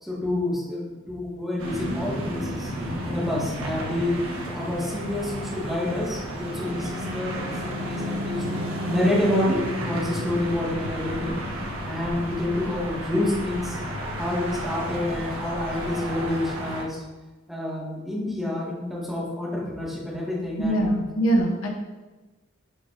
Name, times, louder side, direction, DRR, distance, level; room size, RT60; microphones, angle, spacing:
voice 1, 0.0-4.2 4.5-8.6 8.9-11.3 11.9-13.8 14.2-17.0 17.5-20.9, left 1 dB, ahead, -6 dB, 2.1 m, -28 dB
sound 1, 1.6-16.8, equal, 85° right, 1.5 m, -32 dB
voice 2, 20.6-21.7, right 1 dB, 85° left, 0 dB, 1.1 m, -22 dB
11.5 x 4.1 x 4.0 m, 1.2 s
head